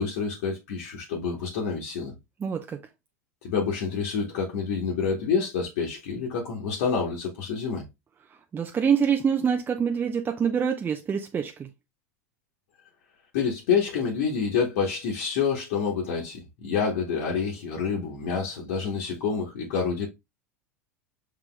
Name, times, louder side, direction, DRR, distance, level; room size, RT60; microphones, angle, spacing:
voice 1, 0.0-2.1 3.4-7.8 13.3-20.1, left 5 dB, 60° left, 1.3 m, -28 dB
voice 2, 2.4-2.8 8.5-11.7, right 7 dB, 25° right, 0.6 m, -25 dB
5.9 x 3.3 x 2.3 m
hypercardioid pair, 85°, 8 cm